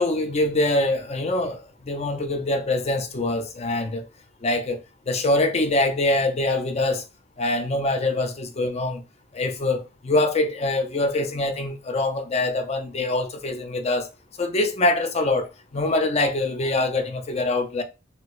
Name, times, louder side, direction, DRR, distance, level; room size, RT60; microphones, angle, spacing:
voice 1, 0.0-4.0 4.4-4.8 5.1-7.0 7.4-9.0 9.3-14.1 14.4-15.5 15.7-17.8, left 2 dB, 35° left, 0.5 m, -24 dB
2.9 x 2.6 x 3.0 m
head